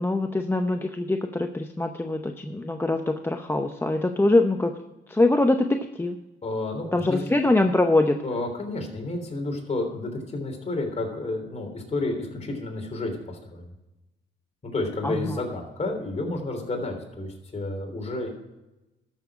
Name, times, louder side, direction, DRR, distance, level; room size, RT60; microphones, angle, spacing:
voice 1, 0.0-4.8 5.1-6.2 6.9-8.2 15.0-15.4, left 2 dB, 10° left, 5 dB, 0.7 m, -23 dB
voice 2, 6.4-7.2 8.2-13.7 14.6-18.3, left 2 dB, 35° left, 2 dB, 3.4 m, -31 dB
12.5 x 7.0 x 4.8 m, 1.0 s
cardioid pair, 90°, 20 cm